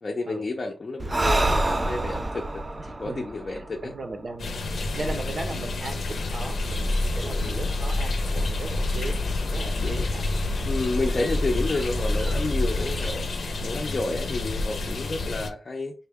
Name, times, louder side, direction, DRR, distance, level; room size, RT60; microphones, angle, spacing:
voice 1, 0.0-2.6 2.9-3.9 5.0-5.1 7.3-7.7 9.8-10.1 10.7-13.3 13.6-15.9, left 2 dB, 40° left, 0.5 m, -30 dB
Breathing, 1.0-4.5, right 2 dB, 25° right, 0.3 m, -27 dB
voice 2, 3.0-10.3 11.2-11.3, right 3 dB, 50° right, 0.8 m, -37 dB
sound 1, 4.4-15.5, left 2 dB, 85° left, 0.6 m, -31 dB
sound 2, 6.5-13.1, left 1 dB, 10° left, 0.8 m, -28 dB
5.5 x 2.2 x 3.4 m
wide cardioid pair, 155°, 0 cm